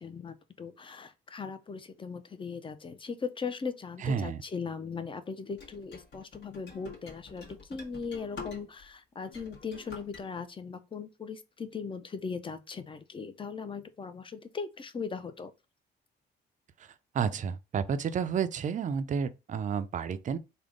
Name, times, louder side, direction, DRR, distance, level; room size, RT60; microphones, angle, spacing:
voice 1, 0.0-15.5, left 5 dB, 25° left, 0.5 m, -39 dB
voice 2, 4.0-4.4 17.1-20.4, right 7 dB, 40° right, 0.4 m, -31 dB
sound 1, 5.6-8.9 9.2-10.2, left 4 dB, 60° left, 1.1 m, -47 dB
3.5 x 2.1 x 3.6 m
cardioid pair, 90°, 20 cm